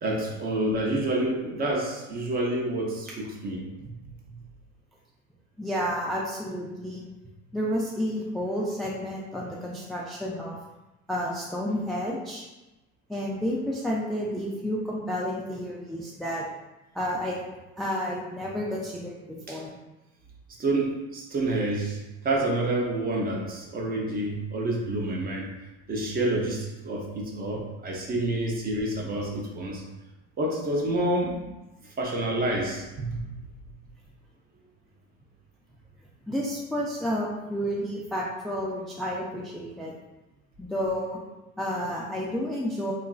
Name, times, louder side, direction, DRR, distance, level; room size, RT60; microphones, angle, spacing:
voice 1, 0.0-3.9 19.5-19.6 20.6-22.0 22.2-25.5 25.9-29.8 30.4-31.4 32.0-33.2, right 1 dB, 30° right, -1 dB, 0.6 m, -28 dB
voice 2, 5.6-7.1 7.5-10.6 11.1-12.4 13.1-16.4 16.9-17.4 17.8-19.2 19.5-19.7 36.3-39.9 40.6-41.2 41.6-42.9, equal, ahead, -4 dB, 0.3 m, -30 dB
2.9 x 2.4 x 2.3 m, 1.0 s
supercardioid pair, 105°, 29 cm